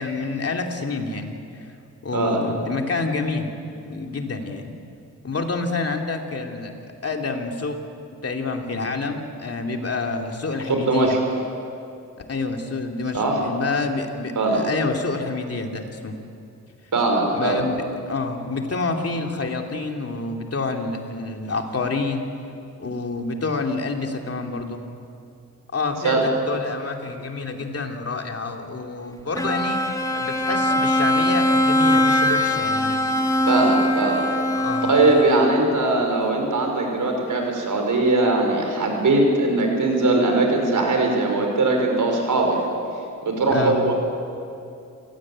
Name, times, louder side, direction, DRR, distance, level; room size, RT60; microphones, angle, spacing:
voice 1, 0.0-1.4 2.0-3.5 3.8-4.8 5.2-7.8 8.2-11.1 12.3-16.1 17.3-22.3 22.8-24.8 25.7-29.8 30.1-32.9 34.5-34.9 43.5-43.8, left 3 dB, 45° left, 3 dB, 2.8 m, -28 dB
voice 2, 10.7-11.2 13.1-13.4 14.4-14.6 16.9-17.6 26.0-26.2 33.5-34.2 34.9-42.6 43.2-43.9, right 2 dB, 70° right, 2 dB, 5.8 m, -20 dB
Bowed string instrument, 29.4-35.8, left 1 dB, 10° left, 2.1 m, -21 dB
27.5 x 17.5 x 8.8 m, 2.6 s
cardioid pair, 90°, 33 cm